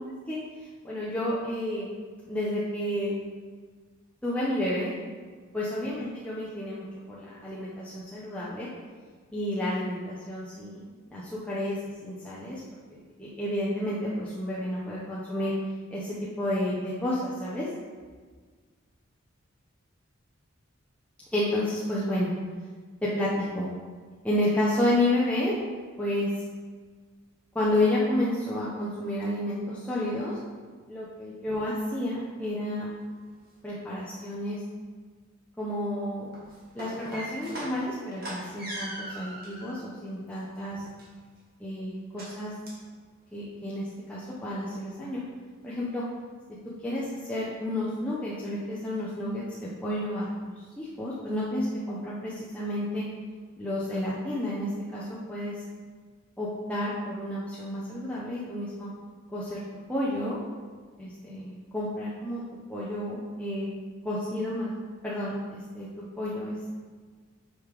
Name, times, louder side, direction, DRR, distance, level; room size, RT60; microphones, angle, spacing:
voice 1, 0.8-1.9 2.3-3.1 4.2-5.0 5.5-8.7 9.3-12.6 13.2-15.5 15.9-17.7 21.3-22.3 23.0-23.7 24.2-25.5 26.0-26.3 27.5-30.4 30.9-32.9 33.6-34.6 35.6-36.3 36.7-40.8 41.6-42.5 43.3-45.2 45.6-46.0 46.8-53.0 53.6-55.5 56.4-58.9 59.3-59.6 59.9-60.4 61.0-62.4 62.7-63.7 64.0-64.7 65.0-65.9 66.2-66.8, left 1 dB, 5° left, -9 dB, 0.8 m, -30 dB
sound 1, 32.4-32.5 32.9-33.5 36.2-39.8 40.3-41.4 42.2-42.3 42.7-42.9 43.2-43.3 43.7-43.8 44.2-44.3, right 1 dB, 45° right, 1.8 m, -40 dB
5.5 x 5.1 x 4.8 m, 1.5 s
head